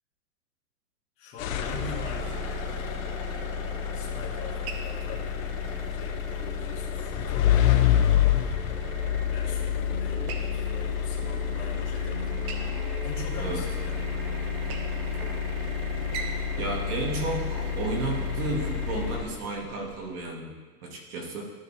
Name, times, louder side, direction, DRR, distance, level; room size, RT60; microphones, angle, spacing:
voice 1, 1.2-2.7 3.9-8.0 9.3-12.4 13.0-14.2, left 3 dB, 30° left, -4 dB, 2.0 m, -42 dB
sound 1, 1.4-19.7, left 9 dB, 60° left, 0.9 m, -28 dB
sound 2, 1.6-19.2, right 3 dB, 20° right, 0.3 m, -42 dB
sound 3, 2.0-18.1, right 5 dB, 45° right, 1.0 m, -46 dB
voice 2, 13.3-13.7 16.6-20.5 20.8-21.4, right 3 dB, 70° right, 0 dB, 2.2 m, -32 dB
13.5 x 4.6 x 3.5 m, 1.3 s
supercardioid pair, 155°, 45 cm